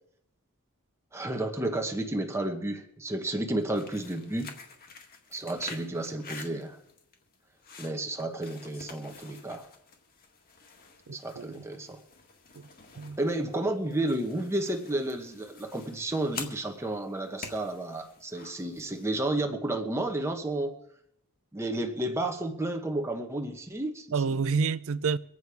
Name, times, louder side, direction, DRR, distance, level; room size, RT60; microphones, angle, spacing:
voice 1, 1.1-4.5 5.3-6.8 7.8-9.7 11.1-12.0 13.2-20.8 21.5-24.4, right 1 dB, 10° right, 1.1 m, -32 dB
sound 1, 3.6-19.2, left 4 dB, 45° left, 1.8 m, -48 dB
voice 2, 11.1-11.7 12.6-12.7 13.0-13.2 24.1-25.2, right 5 dB, 65° right, 0.5 m, -29 dB
24.0 x 8.6 x 4.7 m
head